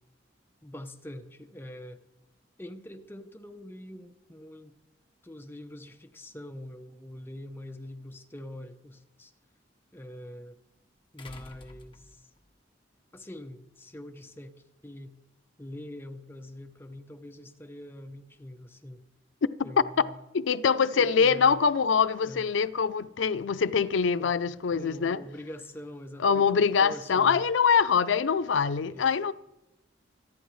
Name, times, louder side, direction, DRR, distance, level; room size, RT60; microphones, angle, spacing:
voice 1, 0.6-2.0 2.6-4.8 5.2-9.3 9.9-10.6 11.1-12.3 13.1-15.2 15.6-19.0 19.6-20.2 20.9-21.6 22.2-22.4 23.9-24.3 24.8-27.5 28.8-29.1, left 1 dB, 10° left, 0.7 m, -44 dB
sound 1, 7.9-8.0 11.2-12.5 13.8-13.9, left 2 dB, 30° left, 1.2 m, -49 dB
voice 2, 20.3-25.2 26.2-29.3, left 6 dB, 80° left, 0.5 m, -24 dB
26.0 x 10.0 x 3.1 m
head